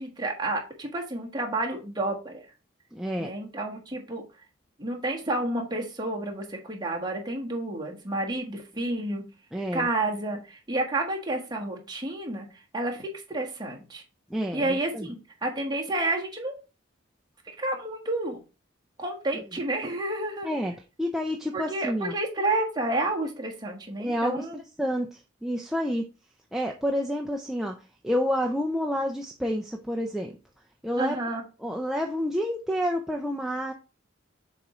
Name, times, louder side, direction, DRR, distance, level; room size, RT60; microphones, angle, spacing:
voice 1, 0.0-2.4 3.2-4.2 4.8-9.2 9.7-12.5 12.7-14.0 14.5-16.5 17.6-18.4 19.0-20.5 21.5-24.6 31.0-31.4, right 2 dB, 20° right, 0 dB, 1.4 m, -30 dB
voice 2, 2.9-3.3 9.5-9.9 14.3-15.1 20.4-20.7 21.0-22.1 24.0-26.1 26.5-27.7 28.0-30.3 30.8-31.2 31.6-33.7, equal, ahead, 1 dB, 0.4 m, -29 dB
7.0 x 3.0 x 4.9 m, 0.32 s
head